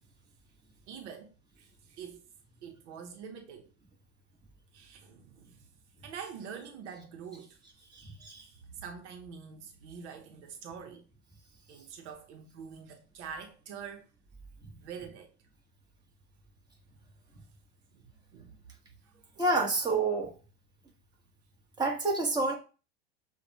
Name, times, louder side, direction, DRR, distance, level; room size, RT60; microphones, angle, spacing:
voice 1, 0.9-1.3 1.6-2.2 2.6-3.7 4.7-5.6 6.0-7.6 8.7-11.0 11.7-14.1 14.8-15.3 17.9-18.0 18.3-18.5 19.1-19.5, right 7 dB, 75° right, 1.0 m, -45 dB
voice 2, 7.9-8.5 19.4-20.3 21.8-22.5, right 2 dB, 10° right, 1.6 m, -28 dB
6.9 x 2.5 x 3.0 m
hypercardioid pair, 110°, 34 cm